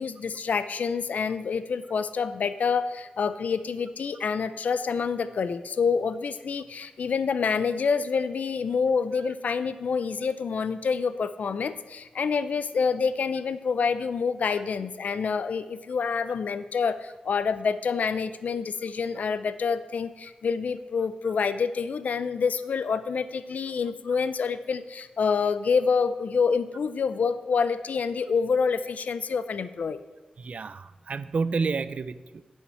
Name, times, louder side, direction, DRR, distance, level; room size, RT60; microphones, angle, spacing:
voice 1, 0.0-30.0, left 5 dB, 70° left, 13 dB, 0.4 m, -27 dB
voice 2, 30.4-32.4, right 4 dB, 55° right, 15 dB, 0.4 m, -30 dB
9.9 x 5.5 x 5.6 m, 1.2 s
wide cardioid pair, 130°, 3 cm